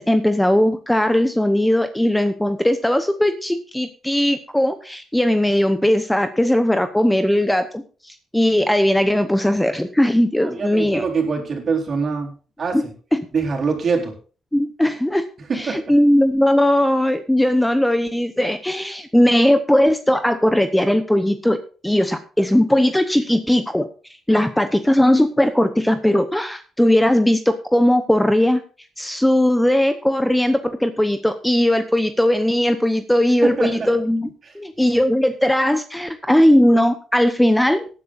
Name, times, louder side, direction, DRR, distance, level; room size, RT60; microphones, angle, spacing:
voice 1, 0.0-11.0 12.7-12.8 13.1-13.3 14.5-15.2 15.5-23.9 24.3-28.6 29.0-34.3 34.5-37.9, left 1 dB, 5° left, 9 dB, 0.9 m, -18 dB
voice 2, 10.4-12.9 13.3-14.1 15.5-15.9 33.4-33.9 34.4-34.5, right 5 dB, 45° right, 1 dB, 4.0 m, -24 dB
18.0 x 10.5 x 2.6 m, 0.37 s
cardioid pair, 90°, 0 cm